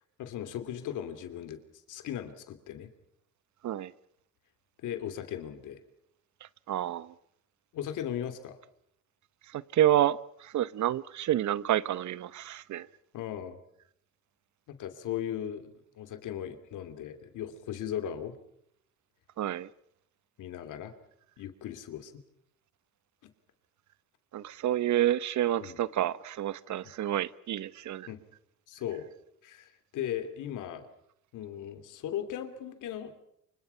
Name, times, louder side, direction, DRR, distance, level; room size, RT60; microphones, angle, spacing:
voice 1, 0.2-1.6 1.9-2.9 4.8-5.8 7.7-8.6 13.1-13.6 14.7-18.4 20.4-20.9 21.4-22.1 23.2-23.3 25.6-25.8 28.1-28.2 28.7-29.1 29.4-30.9 31.3-33.2, left 10 dB, 85° left, 3.0 m, -37 dB
voice 2, 6.7-7.1 9.5-12.9 19.4-19.7 24.3-28.1, right 12 dB, 70° right, 1.0 m, -29 dB
28.5 x 25.5 x 5.8 m
cardioid pair, 90°, 30 cm